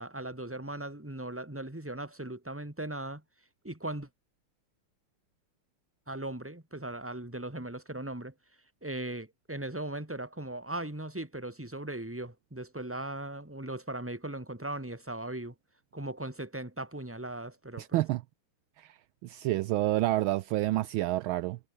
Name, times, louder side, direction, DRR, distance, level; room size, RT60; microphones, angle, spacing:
voice 1, 0.0-3.2 3.6-4.1 6.1-8.3 8.8-15.5 15.9-18.0, right 1 dB, 5° right, 2.7 m, -38 dB
voice 2, 17.8-18.2 18.8-18.9 19.2-21.6, right 16 dB, 75° right, 1.3 m, -29 dB
omnidirectional pair, 2.4 m